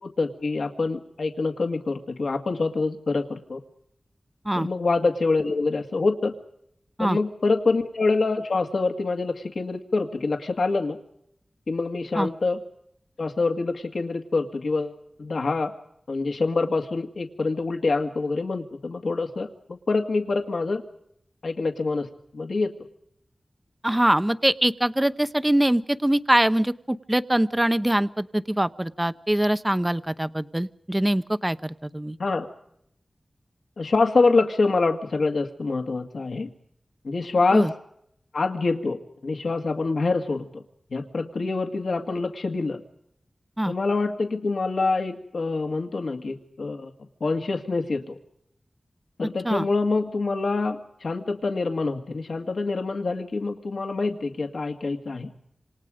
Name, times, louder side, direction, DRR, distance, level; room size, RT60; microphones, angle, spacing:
voice 1, 0.0-3.6 4.6-6.3 7.0-11.0 11.7-12.6 13.2-15.7 16.1-20.8 21.4-22.7 32.2-32.5 33.8-36.5 37.0-37.7 38.3-40.6 40.9-42.8 43.7-46.9 47.2-48.2 49.2-55.3, left 3 dB, 80° left, 5 dB, 2.0 m, -26 dB
voice 2, 23.8-32.2 37.5-37.7 43.6-43.7 49.4-49.7, right 1 dB, 15° right, 13 dB, 0.8 m, -23 dB
27.5 x 26.5 x 5.1 m, 0.72 s
wide cardioid pair, 65°, 0 cm